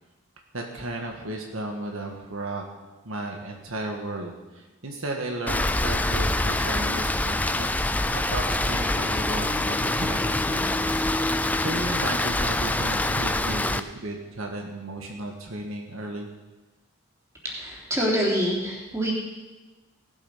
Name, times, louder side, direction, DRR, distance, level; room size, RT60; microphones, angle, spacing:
voice 1, 0.5-2.6 3.0-7.7 8.1-16.3, right 2 dB, 65° right, 2 dB, 1.6 m, -34 dB
Rain, 5.5-13.8, left 2 dB, 5° left, 0.4 m, -25 dB
voice 2, 17.4-19.1, equal, 15° right, -4 dB, 3.2 m, -26 dB
18.0 x 8.3 x 5.7 m, 1.2 s
head